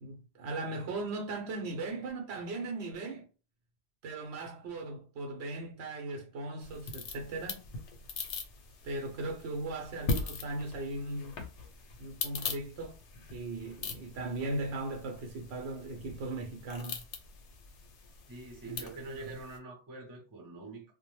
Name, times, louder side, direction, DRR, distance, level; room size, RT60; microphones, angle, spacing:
voice 1, 0.0-3.3 4.0-7.6 8.8-11.4 12.0-13.0 13.3-17.0 18.6-18.9 19.2-19.3, right 2 dB, 75° right, 0.9 m, -38 dB
sound 1, 6.6-19.6, left 3 dB, 90° left, 0.9 m, -41 dB
voice 2, 18.3-20.9, right 3 dB, 25° right, 0.6 m, -45 dB
2.1 x 2.1 x 3.0 m
omnidirectional pair, 1.1 m